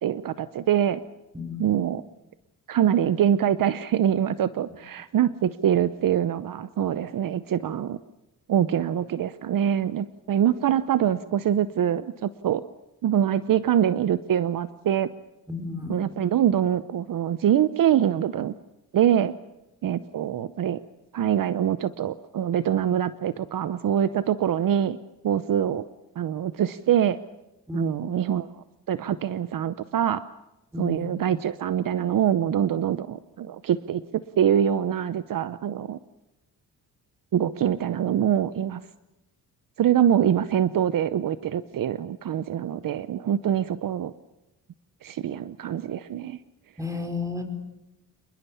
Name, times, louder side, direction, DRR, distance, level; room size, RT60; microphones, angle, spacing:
voice 1, 0.0-1.0 1.6-2.0 2.7-8.0 8.5-12.6 13.0-15.1 15.9-18.5 18.9-19.3 19.8-20.8 21.1-25.0 25.2-25.8 26.2-27.2 27.7-28.5 28.9-30.2 30.8-36.0 37.3-38.8 39.8-44.1 45.0-46.4, right 10 dB, 60° right, 14 dB, 0.8 m, -24 dB
voice 2, 1.3-1.7 15.5-16.0 27.7-27.9 30.7-31.1 46.8-47.4, left 4 dB, 10° right, 7 dB, 4.8 m, -32 dB
27.0 x 21.5 x 7.1 m, 0.93 s
cardioid pair, 105°, 38 cm